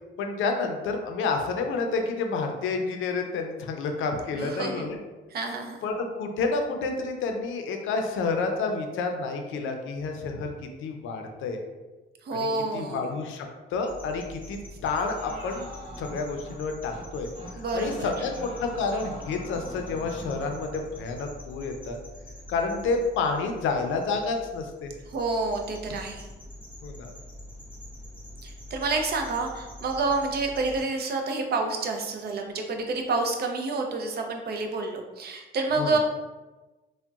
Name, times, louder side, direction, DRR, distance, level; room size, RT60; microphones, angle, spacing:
voice 1, 0.2-5.0 5.8-10.5 10.8-11.6 12.7-15.7 16.0-17.3 17.7-22.0 22.5-24.9 26.8-27.1 35.8-36.0, left 4 dB, 80° left, 4 dB, 0.5 m, -29 dB
voice 2, 4.4-4.9 5.3-5.8 12.2-13.0 17.6-18.1 25.1-26.3 28.4-36.0, right 3 dB, 55° right, 3 dB, 0.5 m, -29 dB
sound 1, 13.9-30.8, left 1 dB, 5° right, 1.2 m, -45 dB
sound 2, 15.1-16.6 16.9-17.1 17.3-17.5 17.8-20.6, right 1 dB, 30° right, 0.9 m, -42 dB
3.7 x 2.1 x 2.3 m, 1.2 s
cardioid pair, 90°, 20 cm